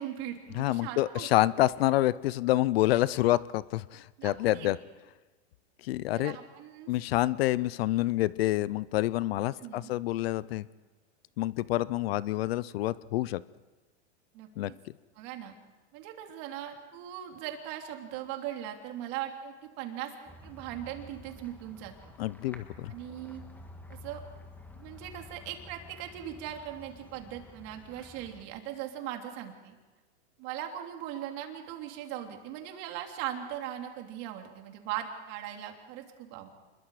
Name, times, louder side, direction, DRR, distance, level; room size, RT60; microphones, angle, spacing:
voice 1, 0.0-1.3 1.6-1.7 4.2-4.7 6.1-6.9 9.6-9.9 14.3-14.7 15.2-15.5 15.9-20.1 20.4-22.1 22.9-23.4 24.0-24.2 24.7-29.7 30.4-36.5, right 11 dB, 45° right, 3 dB, 3.3 m, -39 dB
voice 2, 0.5-4.8 5.8-6.4 6.9-10.6 11.4-13.4 14.6-14.7 22.2-22.9, left 16 dB, 60° left, 19 dB, 0.7 m, -27 dB
sound 1, 20.3-28.4, left 1 dB, 5° left, 1.7 m, -50 dB
27.5 x 22.0 x 5.0 m, 1.2 s
hypercardioid pair, 135°, 34 cm